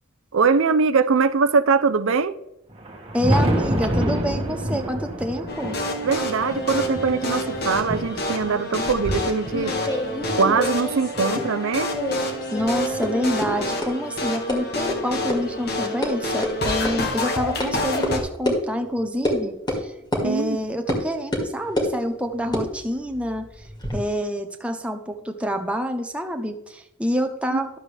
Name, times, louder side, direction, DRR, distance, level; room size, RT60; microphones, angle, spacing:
voice 1, 0.3-2.3 6.0-10.0 10.3-11.9 20.2-20.6 27.5-27.6, right 5 dB, 75° right, 0.6 m, -22 dB
Thunder, 2.7-11.3 11.9-13.6 14.8-14.9 15.4-15.5 17.4-17.5 18.8-18.9 20.5-20.6, equal, 25° right, 1.5 m, -29 dB
voice 2, 3.1-5.8 12.5-19.9 20.2-23.7 23.9-27.8, equal, 5° right, 0.7 m, -27 dB
sound 1, 5.5-18.2, left 1 dB, 50° left, 1.4 m, -28 dB
sound 2, 8.9-11.7 11.9-12.7 13.0-13.1 13.4-13.5 13.8-13.9 14.5-14.6 14.9-15.0 15.3-15.4 15.7-16.1 16.4-16.5 16.9-17.0 17.6-17.7 18.0-18.1 18.5-18.6 19.3-19.4 19.7-19.8 20.1-20.3 20.9-21.0 21.3-21.9 22.4-24.0, left 1 dB, 20° left, 2.0 m, -27 dB
12.0 x 7.3 x 3.3 m
head